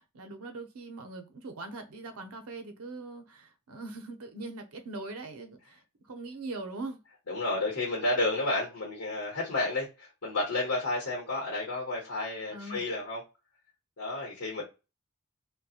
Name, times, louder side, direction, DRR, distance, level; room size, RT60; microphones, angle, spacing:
voice 1, 0.0-7.0 12.5-12.8, right 2 dB, 80° right, 0.6 m, -41 dB
voice 2, 7.3-13.2 14.0-14.6, left 2 dB, 80° left, 0.9 m, -31 dB
2.7 x 2.2 x 2.4 m
head